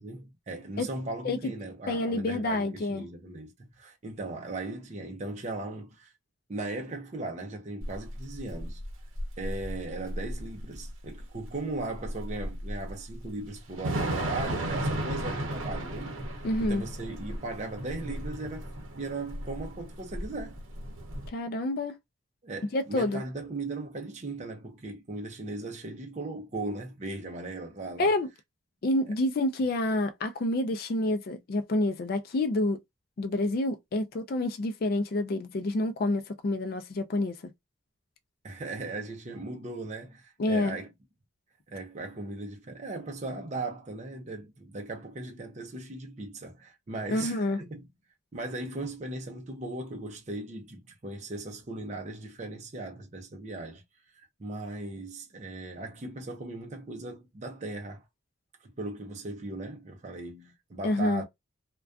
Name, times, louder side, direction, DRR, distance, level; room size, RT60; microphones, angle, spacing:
voice 1, 0.0-6.1 6.5-8.8 9.4-16.2 16.6-20.6 22.4-28.1 38.4-40.9 41.7-47.9 48.3-53.8 54.4-58.0 58.6-61.2, right 2 dB, 35° right, 0.5 m, -38 dB
voice 2, 1.9-3.0 16.4-16.8 21.3-21.9 22.7-23.2 28.0-28.3 28.8-32.8 33.2-37.4 40.4-40.8 47.1-47.6 60.8-61.2, left 2 dB, 50° left, 0.4 m, -28 dB
Thunder / Rain, 7.8-21.3, right 1 dB, 80° right, 0.7 m, -35 dB
2.4 x 2.2 x 2.3 m
head